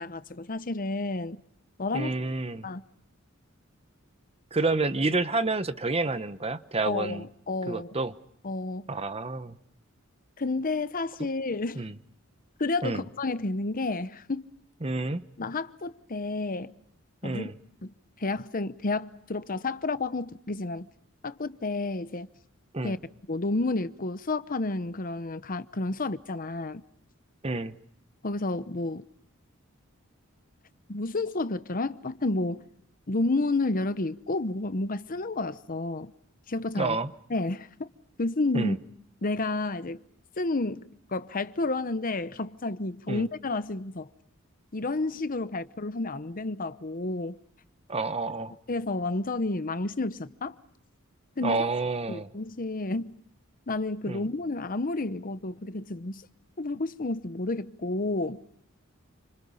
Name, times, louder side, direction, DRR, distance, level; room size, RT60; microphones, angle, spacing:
voice 1, 0.0-1.4 1.8-2.1 2.6-2.8 6.8-7.9 8.4-8.9 10.4-11.9 12.6-14.5 15.4-16.7 17.2-17.5 17.8-20.9 21.2-22.3 22.8-23.0 23.3-26.8 28.2-29.0 30.9-32.6 33.1-36.1 36.5-37.0 37.3-37.9 38.2-38.8 39.2-40.0 40.4-44.1 44.7-47.4 48.7-50.6 51.4-51.6 52.1-53.2 53.7-56.3 56.6-58.4, left 2 dB, 45° left, 1.0 m, -30 dB
voice 2, 1.9-2.7 4.5-7.3 7.7-8.1 8.9-9.6 11.8-11.9 12.8-13.0 14.8-15.2 17.2-17.5 22.7-22.9 27.4-27.7 36.8-37.1 38.5-38.8 43.1-43.2 47.9-48.5 51.4-52.3 54.1-54.2, right 3 dB, 30° right, 1.0 m, -29 dB
29.5 x 26.5 x 5.6 m
head